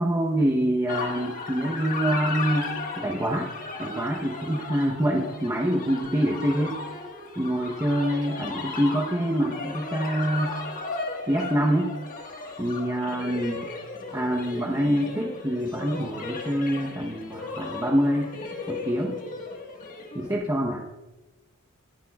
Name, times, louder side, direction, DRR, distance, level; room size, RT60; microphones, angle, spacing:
voice 1, 0.0-3.5 3.8-6.8 7.4-10.6 11.3-11.9 12.6-13.7 14.1-18.3 18.7-19.2 20.1-20.8, equal, 15° right, -3 dB, 0.9 m, -26 dB
sound 1, 0.9-20.3, left 4 dB, 40° left, 1.5 m, -36 dB
20.0 x 10.5 x 2.4 m, 1.1 s
head